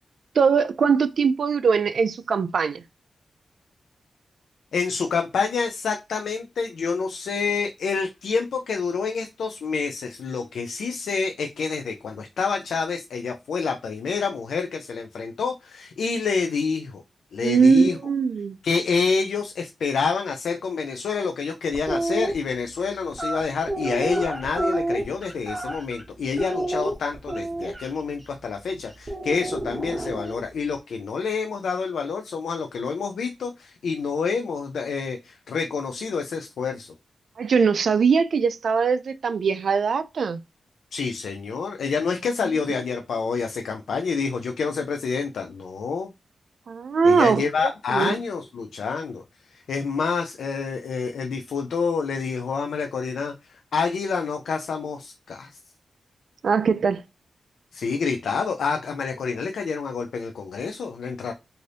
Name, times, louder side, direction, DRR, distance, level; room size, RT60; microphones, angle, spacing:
voice 1, 0.4-2.8 17.4-18.6 37.4-40.4 46.7-47.4 47.9-48.2 56.4-57.0, right 5 dB, 70° right, 0.3 m, -21 dB
voice 2, 4.7-17.0 17.3-18.0 18.6-36.9 40.9-46.1 47.0-49.2 49.5-53.3 53.7-55.5 57.7-61.3, left 5 dB, 85° left, 0.4 m, -27 dB
sound 1, 21.7-22.3 23.1-26.0 26.4-27.9 29.1-30.4, right 1 dB, 25° right, 0.8 m, -28 dB
2.6 x 2.6 x 3.3 m
cardioid pair, 75°, 0 cm